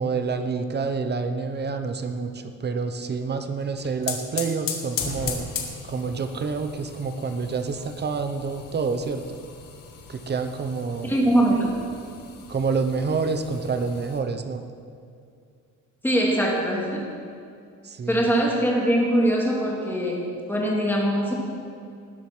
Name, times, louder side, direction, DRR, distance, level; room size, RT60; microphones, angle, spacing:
voice 1, 0.0-5.5 5.8-9.4 10.1-11.1 12.5-14.7 17.8-18.3, right 4 dB, 30° right, 8 dB, 0.9 m, -28 dB
sound 1, 3.6-14.2, left 6 dB, 80° left, 1.8 m, -37 dB
voice 2, 11.0-11.7 16.0-17.0 18.1-21.3, right 1 dB, 5° left, -2 dB, 2.3 m, -22 dB
19.0 x 7.8 x 6.1 m, 2.3 s
cardioid pair, 175°, 33 cm